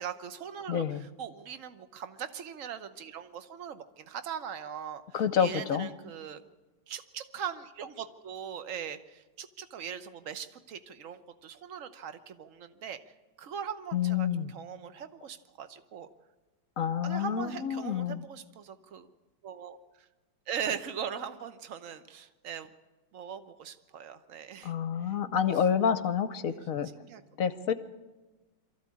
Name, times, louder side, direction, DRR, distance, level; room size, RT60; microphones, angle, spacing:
voice 1, 0.0-6.4 6.9-13.0 13.4-16.1 17.0-19.1 19.4-19.8 20.5-22.7 23.1-24.7 26.5-26.6 26.9-27.2, right 8 dB, 50° right, 10 dB, 1.2 m, -40 dB
voice 2, 0.7-1.0 5.1-5.9 13.9-14.5 16.8-18.2 24.6-26.9 27.4-27.7, left 8 dB, 60° left, 11 dB, 1.0 m, -28 dB
23.5 x 14.5 x 8.5 m, 1.2 s
omnidirectional pair, 2.0 m